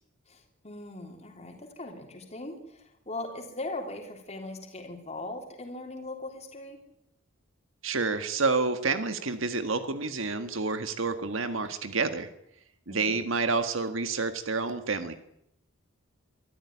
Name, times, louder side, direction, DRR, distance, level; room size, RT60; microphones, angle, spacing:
voice 1, 0.3-6.8 12.9-13.2, left 2 dB, 35° left, 2 dB, 3.5 m, -40 dB
voice 2, 7.8-12.3 12.9-15.1, right 4 dB, 70° right, 9 dB, 1.7 m, -29 dB
24.5 x 14.0 x 9.9 m, 0.78 s
head